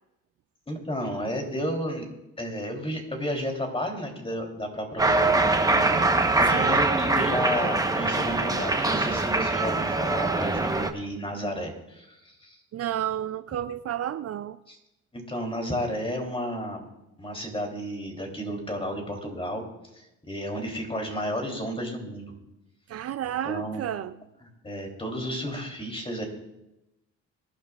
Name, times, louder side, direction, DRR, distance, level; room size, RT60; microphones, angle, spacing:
voice 1, 0.7-2.0 2.4-6.0 6.4-12.6 14.7-14.8 15.1-16.8 17.2-19.6 19.9-22.3 23.4-23.8 24.4-26.2, equal, 20° left, 3.2 m, -32 dB
Cheering, 5.0-10.9, right 2 dB, 10° right, 0.9 m, -23 dB
voice 2, 6.5-6.9 12.7-14.6 22.9-24.1, right 11 dB, 55° right, 0.4 m, -31 dB
22.5 x 11.5 x 2.4 m
cardioid pair, 90°, 30 cm